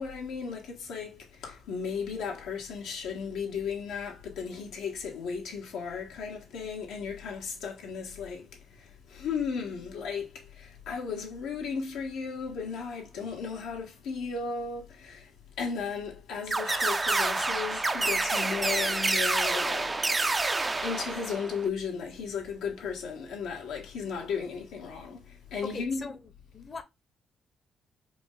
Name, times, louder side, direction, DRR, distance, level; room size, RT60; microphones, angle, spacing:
voice 1, 0.0-8.5 8.8-15.3 15.6-20.0 20.8-26.1, left 6 dB, 85° left, 1.5 m, -35 dB
sound 1, 16.5-21.7, right 3 dB, 20° right, 0.3 m, -28 dB
voice 2, 25.6-26.8, left 4 dB, 35° left, 0.8 m, -41 dB
4.8 x 2.2 x 3.8 m
cardioid pair, 90°, 0 cm